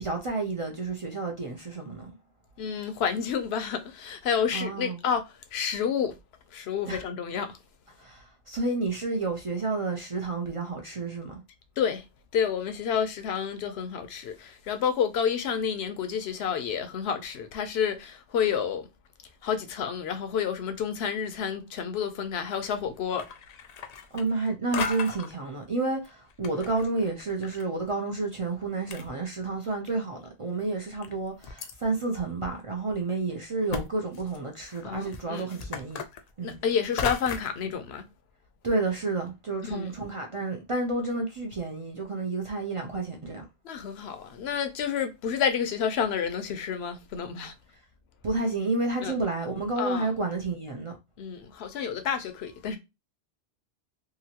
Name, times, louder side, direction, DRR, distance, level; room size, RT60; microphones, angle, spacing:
voice 1, 0.0-2.1 4.5-5.0 6.9-7.0 8.0-11.4 24.1-36.0 36.4-36.6 38.6-43.4 48.2-51.0, right 3 dB, 40° right, 0.5 m, -30 dB
voice 2, 2.6-6.1 6.5-7.6 11.8-12.0 12.3-18.9 19.4-23.2 34.8-35.5 36.4-38.0 39.6-39.9 43.6-47.5 49.0-49.1 49.8-50.1 51.2-52.8, left 7 dB, 75° left, 0.8 m, -29 dB
sound 1, 22.4-22.8 23.1-24.5 24.7-25.3 26.0-27.6 27.9-28.0 28.6-28.7 28.9-29.7 30.3-30.4 31.0-31.7 32.4-32.5 32.9-33.0 33.7-33.8 34.1-37.6, left 5 dB, 55° left, 0.4 m, -36 dB
2.8 x 2.5 x 2.8 m
omnidirectional pair, 1.1 m